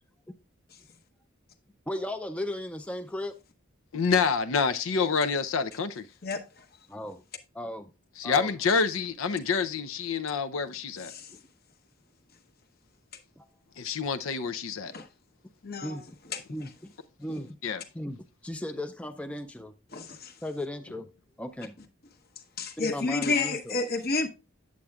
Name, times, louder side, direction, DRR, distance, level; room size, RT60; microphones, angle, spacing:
voice 1, 1.9-3.4 6.9-7.2 7.5-7.9 8.2-8.5 13.4-13.5 15.8-16.0 16.5-16.9 17.2-17.6 17.9-19.7 20.4-21.1 21.4-21.7 22.8-23.8, left 1 dB, 5° left, 0.4 m, -36 dB
voice 2, 3.9-6.1 8.2-11.1 13.8-14.9 17.6-17.8, left 5 dB, 85° left, 0.6 m, -27 dB
voice 3, 15.6-16.0 16.3-16.4 19.9-20.3 22.6-24.3, left 3 dB, 50° left, 1.0 m, -30 dB
8.5 x 7.6 x 2.3 m
head